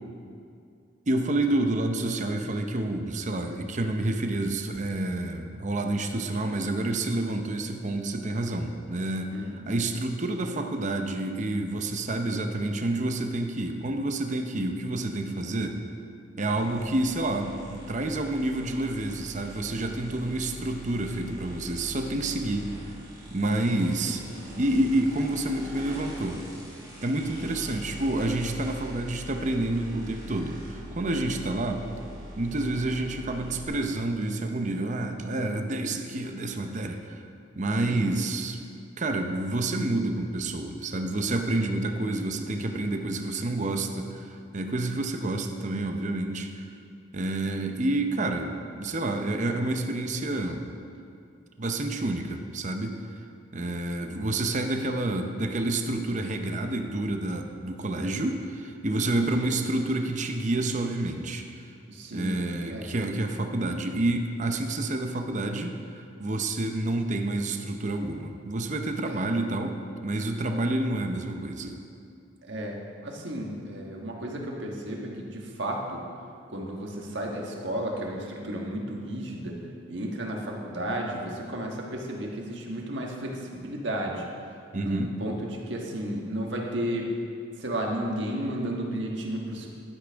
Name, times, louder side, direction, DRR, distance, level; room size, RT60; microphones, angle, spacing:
voice 1, 1.1-9.3 9.7-15.8 16.3-22.9 23.3-24.2 24.6-26.4 27.0-31.8 32.4-37.2 37.6-38.6 39.0-46.6 47.1-50.7 51.6-53.0 53.5-61.7 62.1-71.8 84.7-85.1, right 2 dB, 40° right, 5 dB, 0.7 m, -29 dB
voice 2, 9.3-9.8 20.3-20.6 31.3-31.4 37.8-38.0 59.2-59.7 61.9-62.4 62.7-62.9 69.0-69.2 72.4-76.0 76.5-79.6 79.9-84.2 84.8-87.1 87.6-89.7, right 1 dB, 65° right, 0 dB, 1.4 m, -33 dB
sound 1, 16.5-33.7, equal, 20° right, 2.8 m, -43 dB
11.5 x 10.0 x 3.5 m, 2.4 s
head